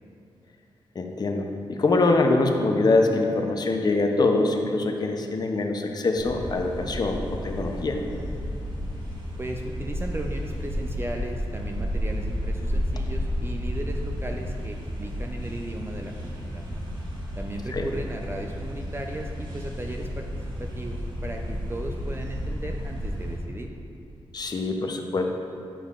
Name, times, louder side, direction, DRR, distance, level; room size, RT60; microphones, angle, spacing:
voice 1, 1.0-8.0 17.7-17.9 24.3-25.3, left 3 dB, 45° left, 3 dB, 0.6 m, -24 dB
sound 1, 6.1-23.4, equal, 55° right, 1.2 m, -32 dB
voice 2, 9.4-16.6 17.4-23.7, right 1 dB, 25° right, 2 dB, 0.4 m, -36 dB
8.4 x 5.4 x 2.4 m, 2.5 s
cardioid pair, 65°, 10 cm